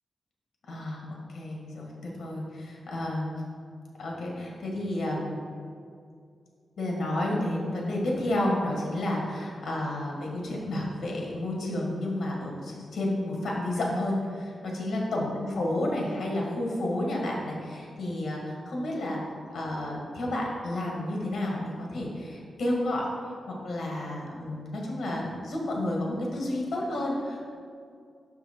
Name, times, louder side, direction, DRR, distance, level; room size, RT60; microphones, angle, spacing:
voice 1, 0.7-3.3 4.0-5.3 6.8-19.2 19.5-23.1 23.5-27.4, left 1 dB, 65° left, -2 dB, 1.5 m, -31 dB
6.2 x 5.6 x 4.4 m, 2.3 s
wide cardioid pair, 135°, 0 cm